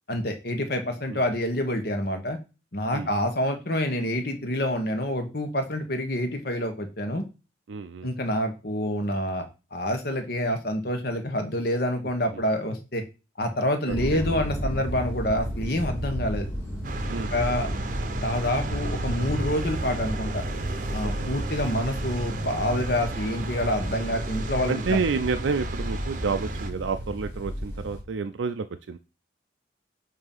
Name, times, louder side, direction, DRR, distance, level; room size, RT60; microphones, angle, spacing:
voice 1, 0.1-2.4 2.7-7.2 8.0-9.4 9.7-13.0 13.4-16.4 17.3-17.7 18.2-20.4 20.9-25.0, left 1 dB, 55° left, 6 dB, 1.3 m, -27 dB
voice 2, 7.7-8.1 13.9-14.2 17.1-17.3 21.2-21.3 24.7-29.0, right 4 dB, 80° right, 8 dB, 0.4 m, -29 dB
sound 1, 13.9-28.0, equal, 10° left, 2.0 m, -33 dB
sound 2, 16.8-26.7, right 3 dB, 45° right, 0.7 m, -34 dB
8.0 x 2.8 x 5.4 m, 0.30 s
head